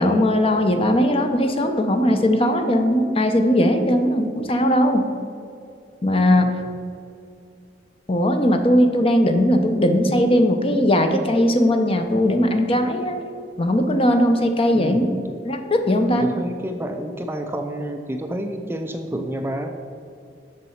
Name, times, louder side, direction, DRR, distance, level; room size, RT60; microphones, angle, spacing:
voice 1, 0.0-5.0 6.0-6.5 8.1-13.1 13.6-15.1 15.4-16.3, left 1 dB, 30° left, 6 dB, 0.7 m, -19 dB
voice 2, 14.7-15.1 16.1-19.7, right 1 dB, 15° right, 5 dB, 0.4 m, -29 dB
6.8 x 6.5 x 5.7 m, 2.5 s
head